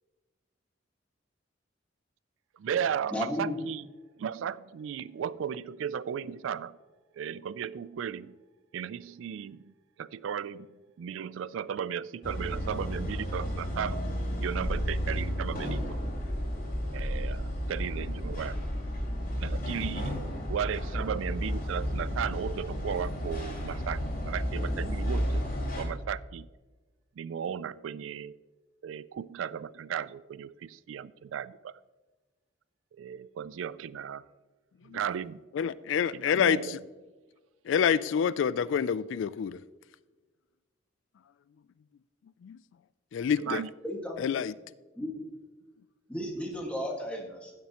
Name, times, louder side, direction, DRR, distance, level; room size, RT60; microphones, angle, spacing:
voice 1, 2.6-3.9 4.2-6.7 7.2-8.3 8.7-9.7 10.0-10.7 11.0-14.0 14.4-16.0 16.9-17.4 17.7-18.5 19.4-25.4 25.7-26.5 27.2-28.3 28.8-31.7 33.0-34.2 34.9-35.4 36.1-36.8 43.4-43.7, right 8 dB, 85° right, 0.3 m, -35 dB
voice 2, 3.1-3.6 43.8-44.2 45.0-45.3 46.1-47.5, left 1 dB, 5° left, 1.8 m, -34 dB
sound 1, 12.2-25.8, equal, 50° left, 3.6 m, -32 dB
voice 3, 35.5-36.8 37.7-39.6 42.4-42.6 43.1-43.6 44.2-44.5, left 7 dB, 75° left, 0.3 m, -27 dB
16.0 x 7.4 x 3.0 m
head